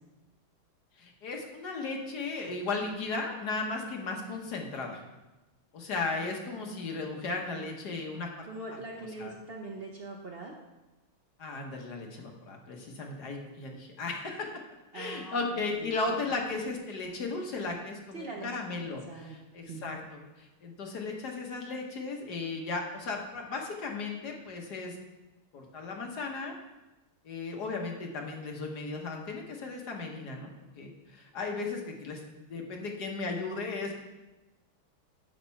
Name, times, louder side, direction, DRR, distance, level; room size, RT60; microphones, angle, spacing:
voice 1, 1.0-5.0 5.7-8.5 8.9-9.3 11.4-14.5 14.9-25.0 25.5-26.5 27.2-30.5 30.8-32.2 32.4-34.0, left 3 dB, 55° left, 1 dB, 1.5 m, -36 dB
voice 2, 6.6-7.2 8.4-10.5 14.9-16.2 18.1-19.4 19.7-20.0, right 3 dB, 85° right, -1 dB, 0.5 m, -43 dB
11.0 x 4.3 x 5.6 m, 1.1 s
omnidirectional pair, 2.3 m